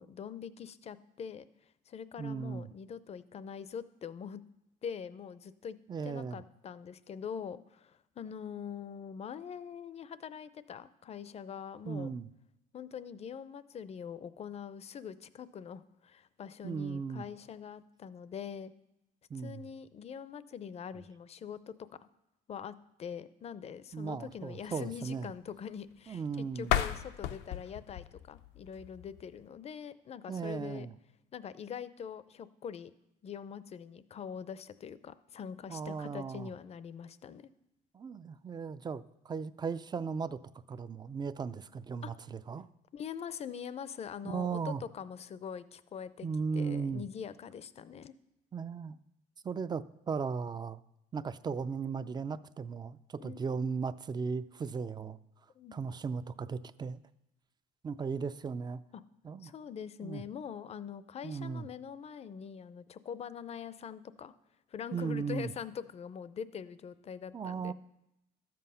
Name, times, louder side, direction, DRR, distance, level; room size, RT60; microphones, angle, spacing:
voice 1, 0.0-4.4 4.8-5.8 6.0-12.1 12.7-18.7 19.4-22.1 22.5-30.9 31.3-32.9 33.2-37.5 42.0-42.1 42.9-46.3 46.5-48.1 53.2-53.4 55.6-55.8 58.9-59.0 59.4-64.3 64.7-67.7, left 7 dB, 40° left, 16 dB, 0.5 m, -43 dB
voice 2, 2.2-2.7 5.9-6.4 11.9-12.3 16.6-17.2 19.3-19.6 23.9-25.3 26.1-26.7 30.3-30.9 35.7-36.5 37.9-40.4 40.7-42.7 44.2-44.8 46.2-47.0 48.5-49.0 49.4-50.8 51.1-55.2 55.7-57.0 57.8-58.8 59.2-59.5 60.0-60.2 61.2-61.7 64.9-65.5 67.3-67.7, right 5 dB, 25° right, 14 dB, 0.4 m, -36 dB
sound 1, 26.6-29.5, left 11 dB, 85° left, 0.6 m, -35 dB
12.5 x 7.7 x 5.6 m, 0.87 s
cardioid pair, 110°, 17 cm